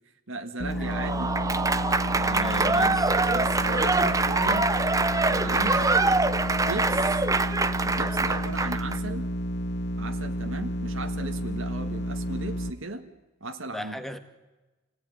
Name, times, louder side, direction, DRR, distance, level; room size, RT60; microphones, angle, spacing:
voice 1, 0.3-1.4 2.1-4.7 5.3-6.0 6.5-7.2 7.8-9.3 10.0-13.1 13.4-13.9, right 2 dB, 65° right, 5 dB, 1.9 m, -36 dB
sound 1, 0.6-12.7, equal, 50° left, 1.5 m, -31 dB
Applause / Crowd, 0.8-9.0, right 3 dB, 15° right, 0.8 m, -24 dB
voice 2, 2.4-3.1 13.7-14.2, equal, ahead, 8 dB, 1.8 m, -37 dB
28.0 x 19.0 x 10.0 m, 1.1 s
head